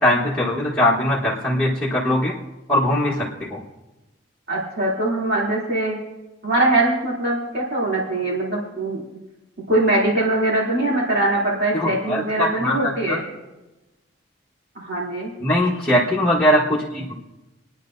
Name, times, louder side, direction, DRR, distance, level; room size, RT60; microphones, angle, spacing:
voice 1, 0.0-2.3 2.7-3.6 11.7-13.2 15.4-17.2, left 1 dB, 5° left, -7 dB, 1.4 m, -21 dB
voice 2, 4.5-6.0 6.4-9.0 9.7-13.3 14.7-15.3 15.6-15.7, right 2 dB, 55° right, -5 dB, 3.0 m, -22 dB
27.5 x 9.7 x 2.7 m, 1.0 s
head